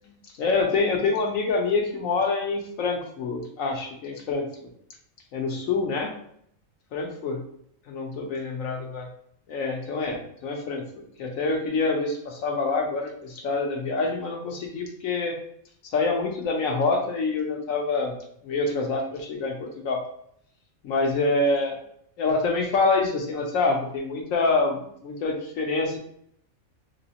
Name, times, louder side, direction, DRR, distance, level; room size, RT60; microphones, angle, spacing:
voice 1, 0.4-4.7 5.3-6.1 6.9-7.4 7.9-9.0 9.5-15.4 15.9-18.1 18.4-20.0 20.8-21.8 22.2-26.0, left 3 dB, 80° left, 1 dB, 1.2 m, -26 dB
3.5 x 3.1 x 2.8 m, 0.68 s
omnidirectional pair, 1.4 m